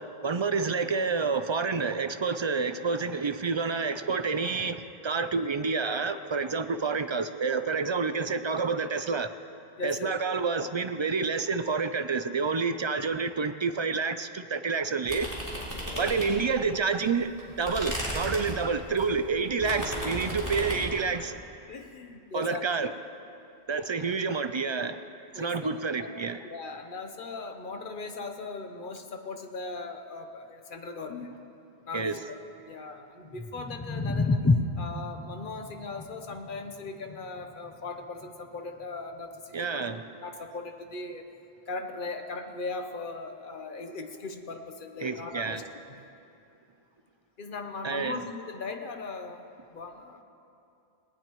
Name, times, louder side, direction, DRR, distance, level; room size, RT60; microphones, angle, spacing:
voice 1, 0.0-9.3 9.8-15.3 16.0-17.3 17.6-21.4 22.3-22.9 23.7-25.0 25.3-26.4 31.9-32.2 39.5-40.0 45.0-45.6 47.8-48.2, right 4 dB, 45° right, 10 dB, 0.3 m, -29 dB
voice 2, 9.8-10.1 15.7-16.1 20.5-20.6 21.7-22.9 25.3-26.1 26.4-31.4 31.8-32.2 32.6-34.4 34.8-41.3 41.7-46.1 47.4-50.2, left 3 dB, 55° left, 6 dB, 1.1 m, -39 dB
sound 1, 15.1-16.6 17.0-21.0, equal, 15° right, 3.2 m, -35 dB
sound 2, 33.2-39.4, left 3 dB, 20° left, 0.4 m, -31 dB
19.0 x 18.5 x 3.1 m, 2.7 s
omnidirectional pair, 1.0 m